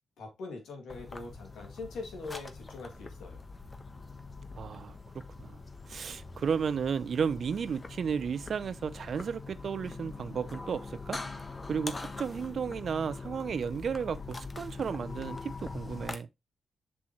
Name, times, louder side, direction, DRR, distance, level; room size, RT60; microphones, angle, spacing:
voice 1, 0.2-3.4, left 3 dB, 85° left, 2.5 m, -42 dB
sound 1, 0.9-16.2, left 3 dB, 35° left, 1.3 m, -43 dB
voice 2, 4.5-5.0 5.4-5.6 5.9-11.2 11.7-16.3, right 6 dB, 65° right, 0.6 m, -33 dB
7.1 x 6.2 x 3.1 m
supercardioid pair, 50°, 0 cm